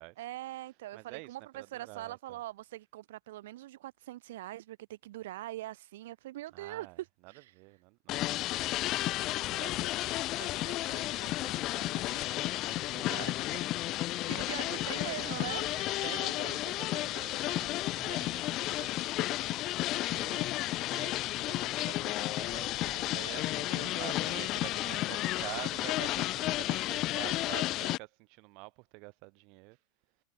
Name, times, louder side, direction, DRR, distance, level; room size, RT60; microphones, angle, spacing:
voice 1, 0.2-7.5 9.4-9.6 14.3-16.2 23.7-24.5, right 15 dB, 75° right, 1.7 m, -43 dB
voice 2, 0.9-2.4 6.5-8.4 9.0-19.7 20.1-29.8, right 30 dB, 45° right, 7.8 m, -48 dB
sound 1, 8.1-28.0, left 17 dB, 35° left, 0.9 m, -32 dB
supercardioid pair, 160°, 0 cm